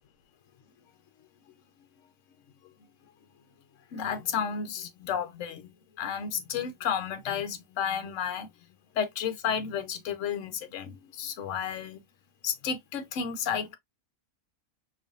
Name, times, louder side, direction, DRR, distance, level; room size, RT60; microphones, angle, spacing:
voice 1, 3.9-8.5 8.9-12.0 12.4-13.7, left 7 dB, 65° left, 1.0 m, -32 dB
4.5 x 2.5 x 2.4 m
omnidirectional pair, 1.5 m